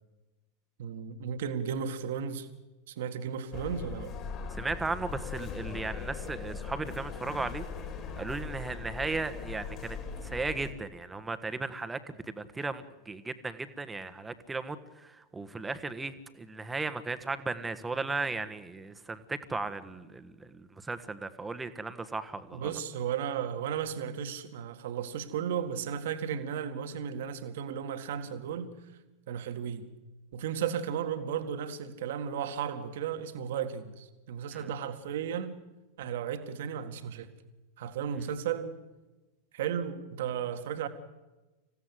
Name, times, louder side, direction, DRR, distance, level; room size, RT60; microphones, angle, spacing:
voice 1, 0.8-2.5 2.9-4.1 22.5-28.7 29.3-29.8 30.3-35.6 36.0-37.3 37.8-38.8 39.5-40.9, right 8 dB, 55° right, 1.9 m, -34 dB
sound 1, 3.5-10.7, left 5 dB, 35° left, 4.1 m, -40 dB
voice 2, 4.6-7.6 8.2-10.0 10.2-22.7 34.5-34.6, right 3 dB, 10° right, 1.5 m, -36 dB
26.5 x 16.0 x 7.9 m
figure-of-eight pair, 90°, 0 cm